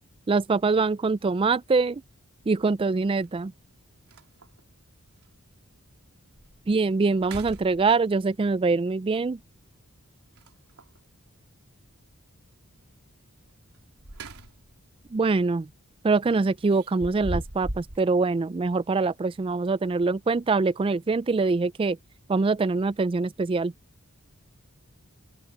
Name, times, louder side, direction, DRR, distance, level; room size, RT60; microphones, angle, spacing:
voice 1, 0.3-2.0 2.5-3.5 6.7-9.4 15.1-15.7 16.0-22.0 22.3-23.7, right 3 dB, 25° right, 0.3 m, -24 dB
sound 1, 1.4-1.5 3.2-3.3 3.7-3.8 4.1-4.7 5.2-5.3 5.9-6.0 6.4-6.7 7.1-8.2 10.3-11.0 13.7-14.8 15.2-15.4 16.7-18.0, right 1 dB, 85° right, 3.4 m, -38 dB
open air
head